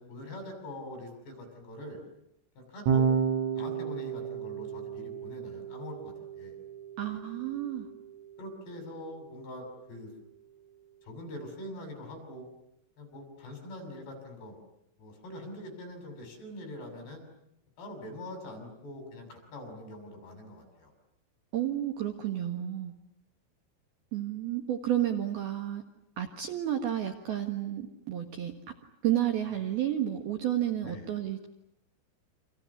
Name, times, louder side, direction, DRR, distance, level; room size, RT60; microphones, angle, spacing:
voice 1, 0.0-2.0 2.6-3.1 3.5-6.6 8.4-10.1 11.0-12.5 13.0-14.6 15.0-17.2 17.8-20.9 30.8-31.1, left 1 dB, 55° left, 4 dB, 8.8 m, -44 dB
Electric guitar / Bass guitar, 2.9-9.3, right 7 dB, 80° right, 7.7 m, -33 dB
voice 2, 7.0-7.9 21.5-22.9 24.1-25.8 26.2-28.5 29.0-31.5, right 11 dB, 65° right, 5 dB, 2.8 m, -31 dB
29.5 x 27.0 x 7.2 m, 0.79 s
omnidirectional pair, 5.9 m